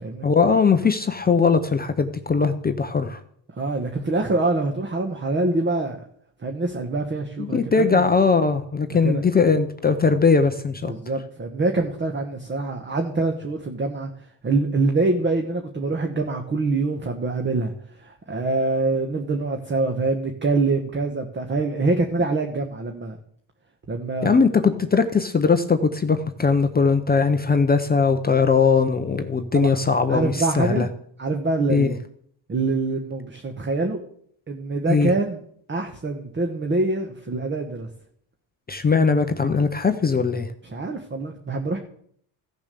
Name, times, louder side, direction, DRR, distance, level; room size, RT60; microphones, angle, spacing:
voice 1, 0.2-3.2 7.4-10.9 24.2-30.9 31.7-31.9 34.9-35.1 38.7-40.5, left 5 dB, 20° left, 8 dB, 0.6 m, -20 dB
voice 2, 3.6-6.0 6.4-8.0 8.9-9.2 10.8-14.1 14.4-17.7 18.0-23.2 23.9-24.4 29.5-29.7 30.1-30.9 31.2-32.0 32.5-34.0 34.5-35.4 35.7-37.9 40.7-41.8, right 3 dB, 25° right, 4 dB, 1.2 m, -25 dB
15.5 x 6.9 x 6.8 m, 0.66 s
cardioid pair, 135°, 47 cm